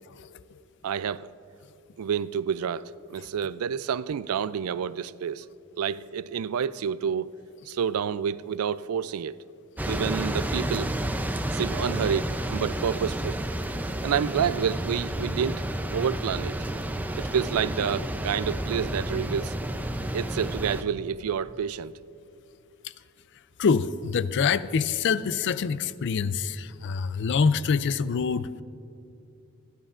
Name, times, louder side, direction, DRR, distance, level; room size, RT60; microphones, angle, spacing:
voice 1, 0.8-1.3 2.0-5.5 5.8-7.3 7.7-9.4 9.8-10.9 11.5-13.4 14.0-15.6 15.9-16.5 17.2-19.6 20.1-21.9, right 7 dB, 80° right, 0.4 m, -29 dB
sound 1, 9.8-20.8, right 1 dB, 10° right, 0.4 m, -30 dB
voice 2, 23.6-28.5, left 5 dB, 55° left, 0.4 m, -25 dB
27.5 x 11.0 x 2.5 m
head